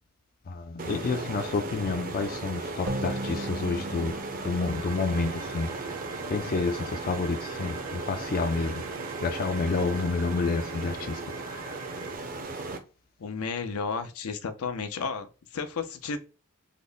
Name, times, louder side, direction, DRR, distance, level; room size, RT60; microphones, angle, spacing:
voice 1, 0.5-5.8 6.3-8.9 9.2-11.8, left 3 dB, 40° left, 0.4 m, -29 dB
sound 1, 0.8-12.8, right 3 dB, 40° right, 0.6 m, -36 dB
sound 2, 2.9-6.3, right 1 dB, 65° right, 1.2 m, -38 dB
sound 3, 4.7-12.2, right 6 dB, 85° right, 0.6 m, -45 dB
voice 2, 13.2-16.2, left 5 dB, 85° left, 0.6 m, -33 dB
3.7 x 2.1 x 3.7 m
head